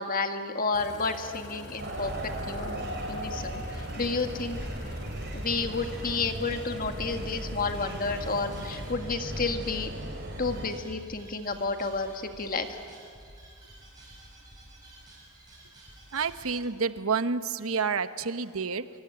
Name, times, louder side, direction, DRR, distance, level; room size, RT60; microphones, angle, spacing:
voice 1, 0.0-2.1 2.5-4.6 5.3-9.9 10.4-12.8, left 4 dB, 40° left, 6 dB, 1.8 m, -31 dB
sound 1, 0.7-9.0, left 1 dB, 65° left, 4.2 m, -46 dB
sound 2, 1.8-10.7, right 1 dB, 50° right, 3.9 m, -37 dB
sound 3, 8.0-16.7, right 1 dB, 20° right, 7.4 m, -51 dB
voice 2, 16.1-18.9, right 5 dB, 75° right, 12 dB, 1.0 m, -29 dB
26.0 x 23.5 x 9.6 m, 2.2 s
head